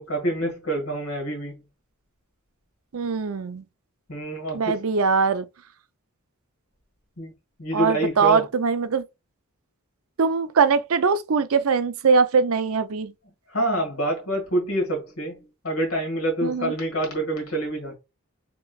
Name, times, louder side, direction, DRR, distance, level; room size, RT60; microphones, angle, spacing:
voice 1, 0.0-1.6 4.1-4.8 7.2-7.3 7.6-8.4 13.5-15.4 15.6-18.0, right 1 dB, 70° left, 1.7 m, -26 dB
voice 2, 2.9-3.6 4.5-5.5 7.7-9.0 10.2-13.1 16.4-16.7, right 5 dB, 70° right, 0.5 m, -21 dB
5.9 x 3.0 x 2.3 m
head